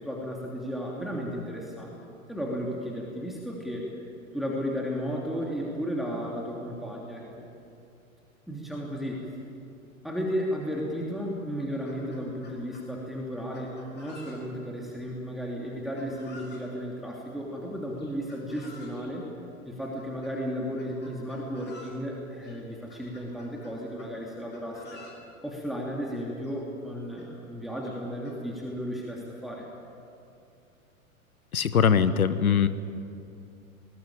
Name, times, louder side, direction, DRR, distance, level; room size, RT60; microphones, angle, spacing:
voice 1, 0.0-1.9 2.3-3.8 4.3-7.5 8.5-9.2 10.0-19.2 19.7-25.0 25.4-29.7, equal, ahead, -3 dB, 2.9 m, -34 dB
Chicken rooster, 11.6-12.9 13.5-14.7 16.0-16.7 18.0-19.1 19.9-20.3 20.8-22.0 22.4-22.5 22.9-24.1 24.5-25.2 26.1-26.2 26.4-26.5 27.2-27.3 27.8-28.3, left 2 dB, 25° left, 5.9 m, -51 dB
voice 2, 31.5-32.7, left 7 dB, 80° left, 14 dB, 1.1 m, -21 dB
20.0 x 19.5 x 8.7 m, 2.6 s
figure-of-eight pair, 100°, 42 cm